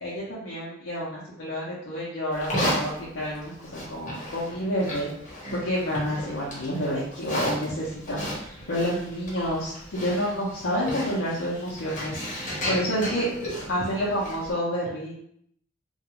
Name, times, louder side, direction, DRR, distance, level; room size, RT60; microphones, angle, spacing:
voice 1, 0.0-5.1 5.5-12.2 12.7-13.3 13.7-15.1, equal, 70° left, -7 dB, 0.6 m, -29 dB
Livestock farm animals working animals, 2.3-14.5, equal, 40° left, 0.9 m, -34 dB
2.3 x 2.3 x 2.8 m, 0.70 s
head